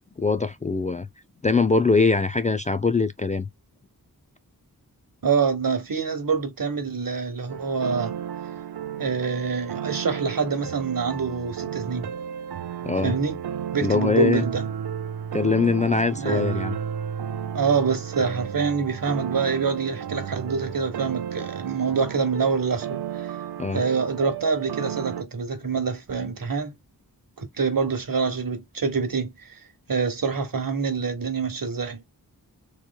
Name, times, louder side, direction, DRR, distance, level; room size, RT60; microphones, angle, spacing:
voice 1, 0.2-1.1 1.4-3.5 12.9-13.2 13.8-14.4 15.3-16.8 23.6-23.8, left 4 dB, 20° left, 0.3 m, -22 dB
voice 2, 5.2-8.1 9.0-12.1 13.0-13.4 13.7-14.6 16.1-16.4 17.5-23.4 23.7-26.7 27.4-29.6 29.9-32.0, right 5 dB, 60° right, 1.2 m, -26 dB
sound 1, 7.5-25.2, right 8 dB, 85° right, 0.5 m, -33 dB
3.1 x 3.0 x 2.2 m
wide cardioid pair, 50°, 37 cm